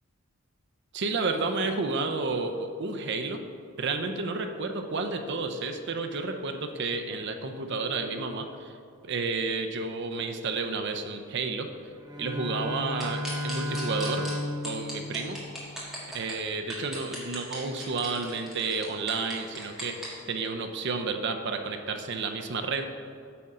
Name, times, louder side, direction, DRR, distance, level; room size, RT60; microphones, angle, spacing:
voice 1, 0.9-3.4 3.8-8.8 9.0-11.7 12.2-14.3 14.6-15.4 16.1-22.9, right 4 dB, 60° right, 5 dB, 0.6 m, -31 dB
Bowed string instrument, 11.9-16.1, left 1 dB, 20° right, 1.2 m, -34 dB
sound 1, 13.0-14.3 14.6-16.3 16.7-20.1, equal, ahead, 1.7 m, -38 dB
8.5 x 3.7 x 5.5 m, 2.3 s
head